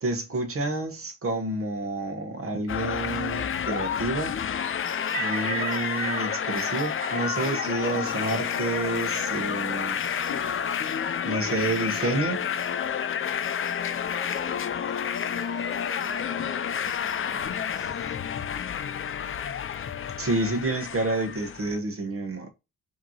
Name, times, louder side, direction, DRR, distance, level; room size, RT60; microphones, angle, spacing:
voice 1, 0.0-4.3 5.2-10.0 11.2-12.4 20.2-22.5, right 2 dB, 40° right, 1.1 m, -29 dB
sound 1, 2.7-21.8, left 8 dB, 40° left, 0.4 m, -30 dB
sound 2, 5.0-9.3, right 6 dB, 25° right, 0.4 m, -37 dB
sound 3, 8.0-16.6 16.8-18.2, left 6 dB, 65° left, 0.9 m, -46 dB
voice 2, 11.5-12.1 13.8-18.2, left 1 dB, ahead, 1.3 m, -47 dB
5.1 x 3.0 x 2.8 m
wide cardioid pair, 155°, 34 cm